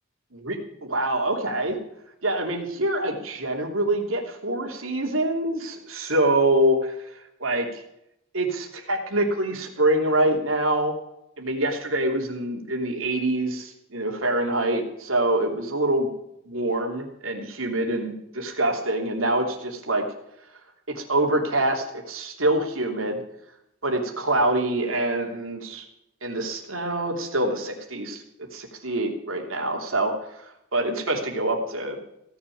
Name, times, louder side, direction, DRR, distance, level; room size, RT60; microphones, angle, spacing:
voice 1, 0.3-1.8 2.2-6.9 7.4-7.8 8.3-10.9 11.4-16.1 16.5-20.0 20.9-23.2 23.8-25.8 26.2-28.2 28.5-30.1 30.7-32.0, right 1 dB, 85° right, 2 dB, 3.0 m, -25 dB
17.0 x 7.1 x 9.2 m, 0.79 s
head